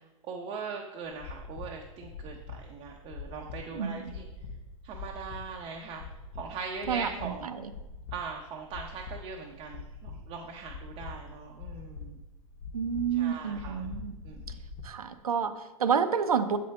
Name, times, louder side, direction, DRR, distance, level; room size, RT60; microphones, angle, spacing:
voice 1, 0.0-4.3 4.8-6.0 6.3-7.5 8.1-12.2 13.1-13.9 14.2-14.4, right 5 dB, 30° right, 1 dB, 0.7 m, -40 dB
sound 1, 1.0-14.9, left 4 dB, 45° left, 1.2 m, -44 dB
voice 2, 3.7-4.2 6.9-7.7 12.7-14.2 14.8-16.6, right 7 dB, 80° right, 10 dB, 0.6 m, -29 dB
7.6 x 5.1 x 3.4 m, 1.0 s
figure-of-eight pair, 105°, 19 cm